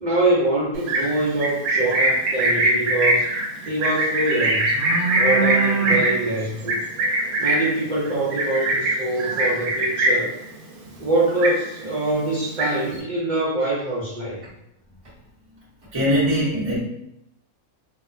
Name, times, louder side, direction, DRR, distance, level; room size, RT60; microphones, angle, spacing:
voice 1, 0.0-3.3 3.7-4.7 5.1-6.8 7.4-10.4 11.0-14.4, right 2 dB, 60° right, 0.4 m, -24 dB
Livestock farm animals working animals, 0.8-10.4 10.7-11.0 11.3-12.0 12.3-13.0, right 2 dB, 80° right, 1.1 m, -22 dB
voice 2, 15.9-16.8, equal, 20° right, 0.8 m, -21 dB
2.8 x 2.1 x 2.5 m
omnidirectional pair, 1.5 m